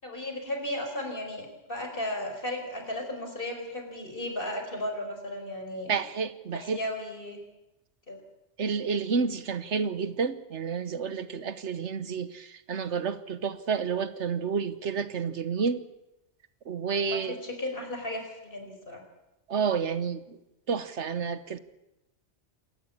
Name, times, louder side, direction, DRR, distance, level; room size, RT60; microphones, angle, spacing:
voice 1, 0.0-6.0 6.5-7.4 8.1-8.2 16.9-19.0, left 1 dB, 50° left, 4.9 m, -35 dB
voice 2, 5.9-6.8 8.6-15.8 16.7-17.4 19.5-20.4 20.7-21.6, right 6 dB, 80° right, 1.4 m, -30 dB
28.0 x 13.5 x 8.6 m
omnidirectional pair, 1.2 m